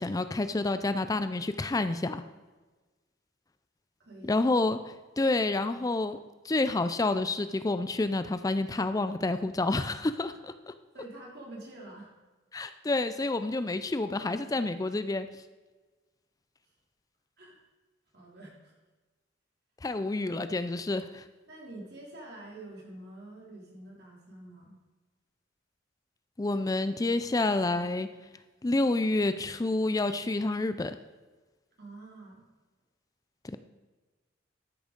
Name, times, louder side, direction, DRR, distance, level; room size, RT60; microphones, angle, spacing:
voice 1, 0.0-2.2 4.2-4.8 5.2-6.2 6.4-10.7 12.5-15.3 19.8-21.3 26.4-28.1 28.6-31.0 33.4-33.6, left 2 dB, 20° left, 11 dB, 0.4 m, -29 dB
voice 2, 4.0-4.4 10.9-12.1 17.4-17.6 18.1-18.7 19.9-20.1 21.5-24.8 31.8-32.5, right 1 dB, 55° right, -3 dB, 3.6 m, -47 dB
13.0 x 6.3 x 5.2 m, 1.3 s
head